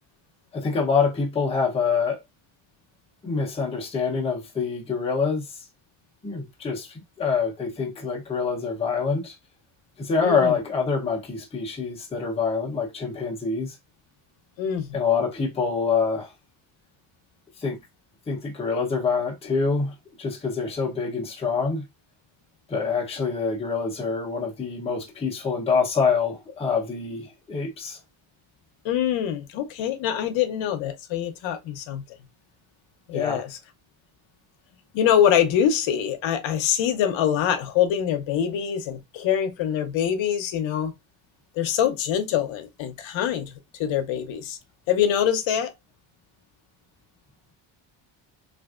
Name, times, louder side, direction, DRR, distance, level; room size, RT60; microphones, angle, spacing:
voice 1, 0.5-2.2 3.2-5.6 6.2-9.4 10.0-13.8 14.9-16.3 17.6-17.8 18.3-21.8 22.7-28.0 33.1-33.4, left 5 dB, 15° left, 0.6 m, -26 dB
voice 2, 10.2-10.6 14.6-15.0 28.8-32.0 33.1-33.6 34.9-40.9 41.6-43.5 43.8-44.6 44.9-45.7, left 9 dB, 70° left, 0.7 m, -24 dB
3.4 x 2.5 x 2.3 m
cardioid pair, 170°, 48 cm